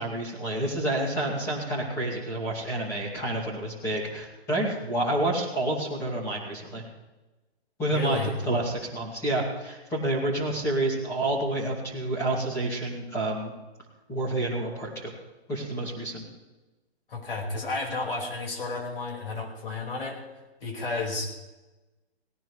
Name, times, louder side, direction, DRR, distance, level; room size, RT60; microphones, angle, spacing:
voice 1, 0.0-6.8 7.8-13.5 14.1-15.1 15.5-16.2, right 1 dB, 10° left, -5 dB, 2.5 m, -29 dB
voice 2, 7.9-8.3 17.1-20.2 20.6-21.3, left 3 dB, 60° left, 0 dB, 5.1 m, -32 dB
18.0 x 18.0 x 3.3 m, 1.1 s
hypercardioid pair, 170°, 32 cm